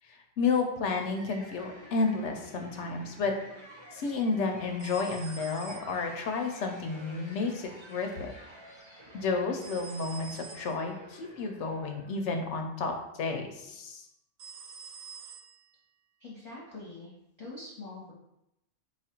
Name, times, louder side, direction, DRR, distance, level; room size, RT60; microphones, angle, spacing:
voice 1, 0.1-3.4 3.9-8.3 9.1-14.0, left 4 dB, 75° left, 4 dB, 0.9 m, -31 dB
sound 1, 1.2-12.3, right 1 dB, 25° right, 0.8 m, -51 dB
sound 2, 4.8-6.4 9.6-10.9 14.4-15.8, right 6 dB, 70° right, 0.9 m, -47 dB
voice 2, 16.2-17.1 17.4-18.1, left 2 dB, 35° left, -7 dB, 0.9 m, -44 dB
4.5 x 2.4 x 4.3 m, 0.83 s
omnidirectional pair, 1.3 m